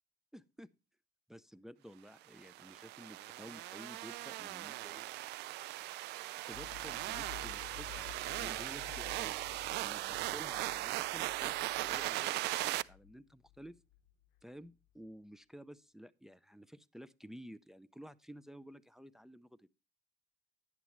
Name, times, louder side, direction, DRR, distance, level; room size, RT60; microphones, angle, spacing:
voice 1, 0.3-0.7 1.3-5.0 6.5-9.4 9.7-13.8 14.4-19.8, equal, 5° right, 0.5 m, -53 dB
sound 1, 2.4-12.8, right 17 dB, 80° right, 0.4 m, -39 dB
sound 2, 6.5-14.7, left 13 dB, 65° left, 0.9 m, -54 dB
11.0 x 9.0 x 3.0 m
cardioid pair, 110°, 17 cm